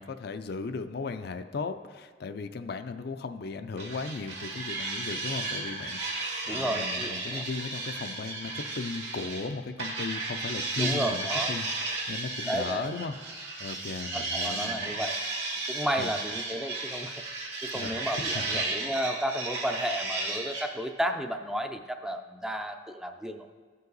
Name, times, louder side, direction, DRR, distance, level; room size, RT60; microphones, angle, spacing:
voice 1, 0.0-13.2 13.6-15.1 16.0-16.1 17.7-18.6, left 4 dB, 60° left, 8 dB, 0.5 m, -37 dB
sound 1, 3.8-9.5 9.8-20.7, right 3 dB, 75° right, 2.2 m, -34 dB
voice 2, 6.5-7.4 10.8-11.5 12.5-12.9 14.1-15.3 15.7-17.2 17.7-23.5, equal, 5° right, 5 dB, 0.4 m, -33 dB
15.0 x 5.5 x 3.9 m, 1.5 s
head